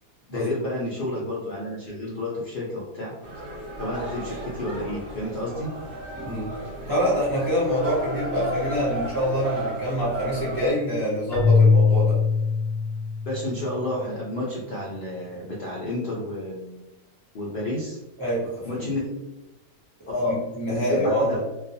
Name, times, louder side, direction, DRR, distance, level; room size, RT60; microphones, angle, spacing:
voice 1, 0.3-3.1 3.8-5.7 13.2-16.9 17.3-18.0 18.6-19.1 20.1-20.4 20.7-21.4, left 1 dB, 65° left, -5 dB, 0.5 m, -30 dB
sound 1, 3.2-10.7, right 1 dB, 50° right, 0.8 m, -34 dB
voice 2, 6.2-6.5 6.9-12.2 18.2-18.9 20.3-21.4, equal, 25° right, -8 dB, 0.4 m, -25 dB
Keyboard (musical), 11.3-13.6, left 4 dB, 40° left, 0.8 m, -20 dB
2.3 x 2.3 x 2.6 m, 0.98 s
omnidirectional pair, 1.5 m